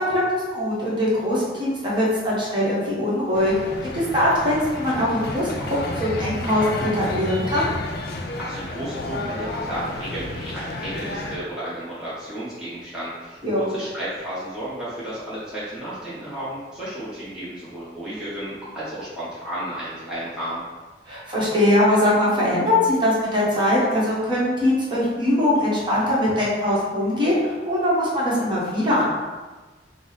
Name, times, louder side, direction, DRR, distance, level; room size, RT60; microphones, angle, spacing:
voice 1, 0.0-3.5 3.9-7.6 13.4-13.7 21.1-29.0, left 1 dB, 25° right, -7 dB, 1.1 m, -21 dB
sound 1, 3.3-11.4, left 2 dB, 55° left, 0.5 m, -31 dB
voice 2, 8.4-20.6, right 1 dB, 5° right, -11 dB, 0.9 m, -33 dB
4.7 x 2.0 x 4.0 m, 1.3 s
head